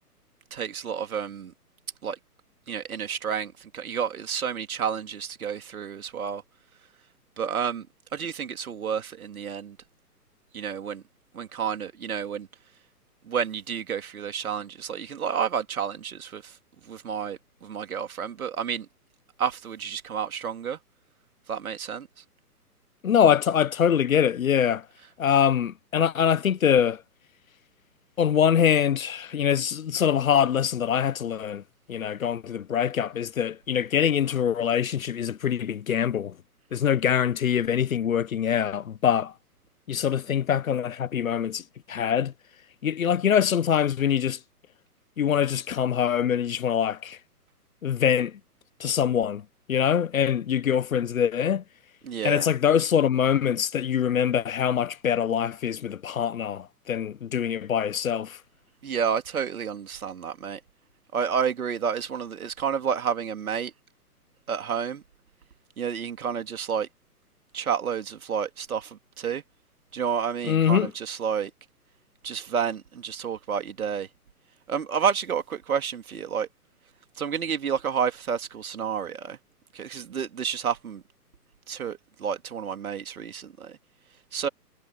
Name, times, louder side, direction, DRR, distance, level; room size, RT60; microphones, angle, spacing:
voice 1, 0.5-1.5 2.0-2.2 2.7-6.4 7.4-7.9 8.1-9.8 10.5-11.0 11.3-12.5 13.2-16.5 16.9-18.9 19.4-20.8 21.5-22.1 25.0-25.1 52.0-52.5 58.8-60.6 61.1-63.7 64.5-65.0 65.8-66.9 67.5-69.4 69.9-71.5 72.2-74.1 74.7-76.5 77.2-79.4 79.7-81.0 81.7-83.8 84.3-84.5, right 7 dB, 60° right, 3.1 m, -30 dB
voice 2, 23.0-24.8 25.2-27.0 28.2-31.6 31.9-36.3 36.7-39.3 39.9-42.3 42.8-44.4 45.2-47.2 47.8-48.4 48.8-49.4 49.7-51.6 52.2-58.4 70.5-70.9, left 8 dB, 60° left, 1.2 m, -24 dB
figure-of-eight pair, 130°, 47 cm